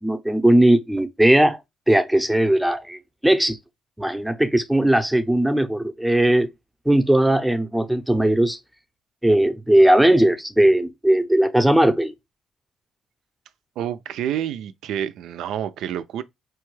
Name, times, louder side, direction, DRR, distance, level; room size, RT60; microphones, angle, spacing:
voice 1, 0.0-1.6 1.9-3.6 4.0-6.5 6.9-8.6 9.2-12.1, right 1 dB, 5° right, 0.6 m, -18 dB
voice 2, 13.8-16.2, right 10 dB, 80° right, 0.4 m, -28 dB
4.4 x 2.3 x 3.1 m
cardioid pair, 90°, 0 cm